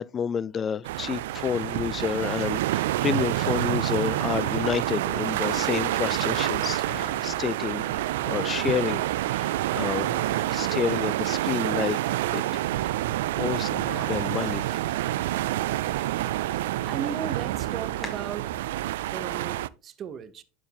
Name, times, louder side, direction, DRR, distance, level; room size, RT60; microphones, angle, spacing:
voice 1, 0.0-12.0 12.3-13.0 13.4-13.7 14.1-14.8, left 7 dB, 30° left, 0.3 m, -30 dB
sound 1, 0.8-19.7, right 15 dB, 80° right, 0.3 m, -27 dB
sound 2, 3.4-18.1, left 2 dB, 15° left, 2.2 m, -52 dB
sound 3, 5.3-13.3 13.6-16.0, left 5 dB, 50° left, 2.0 m, -47 dB
voice 2, 16.8-18.5 19.1-20.4, right 7 dB, 40° right, 0.9 m, -36 dB
11.5 x 4.6 x 2.9 m
supercardioid pair, 105°, 0 cm